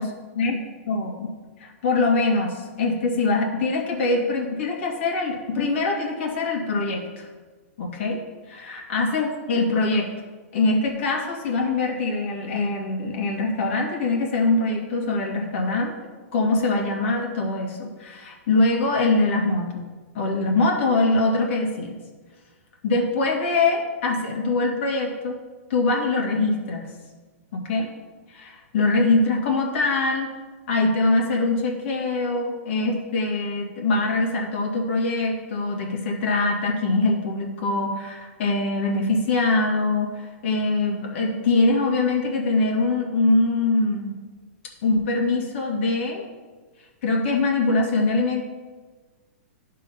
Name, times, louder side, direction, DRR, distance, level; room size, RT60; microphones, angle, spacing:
voice 1, 0.4-1.3 1.6-7.3 7.8-8.2 8.5-10.1 10.5-15.9 16.3-19.9 20.1-22.0 22.8-25.4 25.7-26.9 27.5-27.9 28.3-30.3 30.7-44.1 44.8-46.3 47.0-48.4, left 3 dB, 55° left, 0 dB, 2.1 m, -23 dB
11.0 x 3.8 x 5.6 m, 1.3 s
hypercardioid pair, 145°, 8 cm